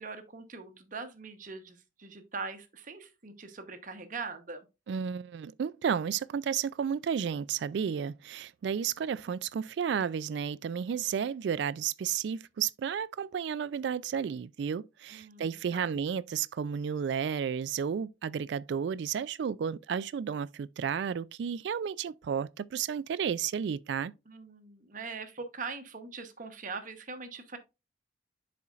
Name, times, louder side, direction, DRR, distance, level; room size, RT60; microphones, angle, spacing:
voice 1, 0.0-4.7 15.1-16.0 24.3-27.6, right 4 dB, 45° right, 0.9 m, -42 dB
voice 2, 4.9-24.1, right 7 dB, 65° right, 0.3 m, -32 dB
11.0 x 4.3 x 2.4 m
head